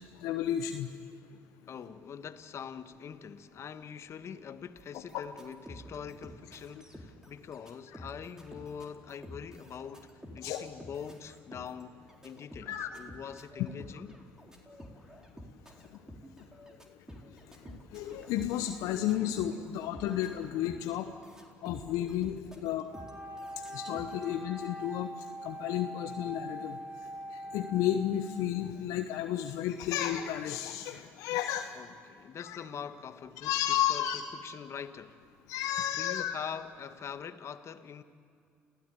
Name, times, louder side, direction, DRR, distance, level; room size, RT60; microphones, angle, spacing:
voice 1, 0.2-0.9 5.1-5.2 10.4-10.7 12.7-12.9 17.7-21.1 21.6-22.9 23.7-25.1 25.4-26.8 27.3-31.7 32.4-32.6 33.4-34.2 35.5-36.4, left 11 dB, 70° left, 1.0 m, -32 dB
voice 2, 1.7-14.2 31.7-35.2 36.0-38.0, left 7 dB, 50° left, 1.4 m, -44 dB
sound 1, 4.8-19.7 19.9-24.2, equal, 10° right, 4.2 m, -50 dB
Wind instrument woodwind instrument, 22.9-28.8, equal, 35° right, 4.3 m, -43 dB
28.5 x 16.0 x 8.7 m
hypercardioid pair, 55°, 6 cm